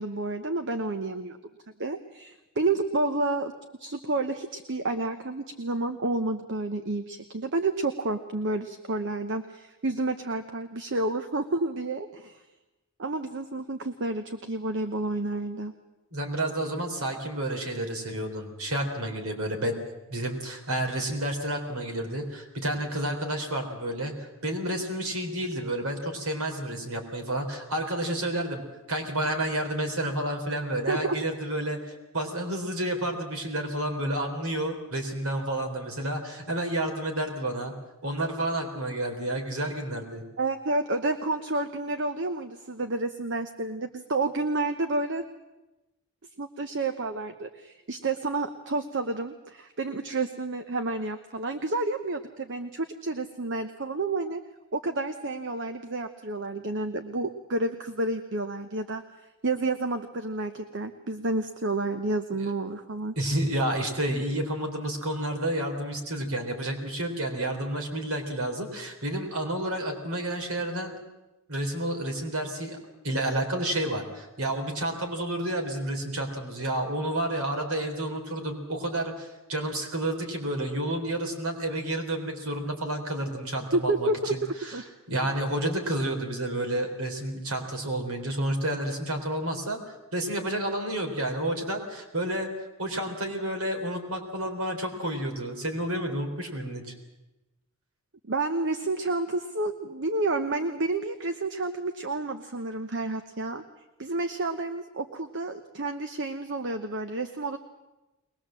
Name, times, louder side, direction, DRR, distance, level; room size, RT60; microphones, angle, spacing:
voice 1, 0.0-1.4 1.8-3.5 3.8-12.4 13.0-15.7 30.9-31.2 40.4-45.2 46.4-54.4 54.7-59.0 59.4-63.1 83.7-84.8 98.3-103.6 104.0-107.6, right 2 dB, 55° right, 8 dB, 1.0 m, -30 dB
voice 2, 16.1-19.8 20.1-24.1 24.4-37.7 38.0-40.2 62.4-62.5 63.2-70.9 71.5-72.8 73.0-84.8 85.1-92.5 92.8-96.9, right 1 dB, 70° right, 4 dB, 3.8 m, -30 dB
22.5 x 20.0 x 7.6 m, 1.0 s
head